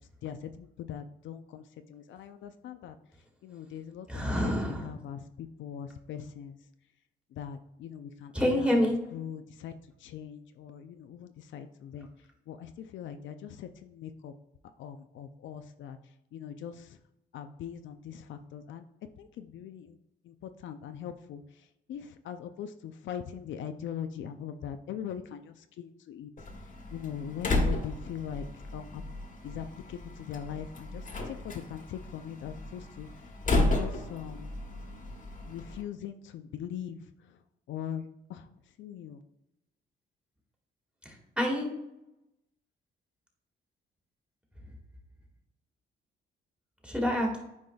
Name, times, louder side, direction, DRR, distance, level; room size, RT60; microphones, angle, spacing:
voice 1, 0.2-1.6 1.9-3.0 3.4-6.6 7.3-12.1 12.5-14.3 14.8-16.0 16.3-17.0 17.3-18.8 19.2-20.0 20.2-26.3 26.9-29.0 29.4-34.5 35.4-37.4 37.7-38.5 38.8-39.2, left 9 dB, 70° left, 8 dB, 0.5 m, -41 dB
voice 2, 4.1-4.9 8.3-9.0 41.1-41.7 46.8-47.4, equal, 5° right, 0 dB, 1.8 m, -27 dB
Slam, 26.4-35.8, left 2 dB, 40° left, 1.3 m, -33 dB
9.4 x 4.9 x 2.3 m, 0.87 s
cardioid pair, 90°, 20 cm